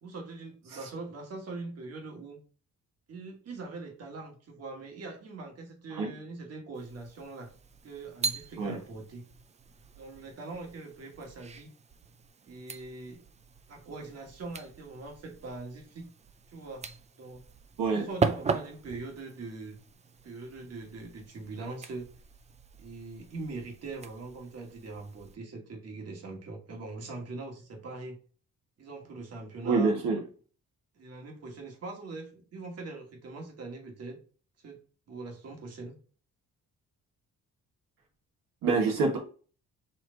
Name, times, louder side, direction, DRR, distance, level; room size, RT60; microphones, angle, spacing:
voice 1, 0.0-2.4 3.1-7.5 7.8-9.2 9.9-11.7 12.5-13.2 13.7-16.1 16.5-17.4 17.9-19.8 20.2-22.1 22.8-28.2 28.8-29.9 30.9-34.2 34.6-34.8 35.1-36.0, right 3 dB, 50° right, 1 dB, 1.5 m, -42 dB
sound 1, 6.7-25.4, right 4 dB, 20° right, 0.3 m, -39 dB
voice 2, 29.6-30.2 38.6-39.2, right 4 dB, 85° right, 1 dB, 1.3 m, -26 dB
4.5 x 3.1 x 3.8 m, 0.40 s
cardioid pair, 145°, 33 cm